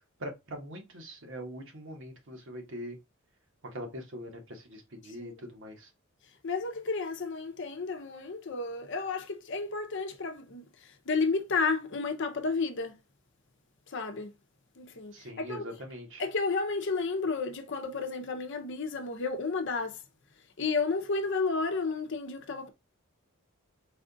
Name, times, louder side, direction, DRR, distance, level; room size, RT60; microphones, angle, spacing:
voice 1, 0.2-3.0 3.6-5.9 15.1-16.2, equal, 60° right, 1.2 m, -42 dB
voice 2, 6.4-10.6 11.1-12.9 13.9-14.3 14.8-15.6 16.2-20.0 20.6-22.7, left 4 dB, 60° left, 0.7 m, -32 dB
4.2 x 2.4 x 3.8 m
head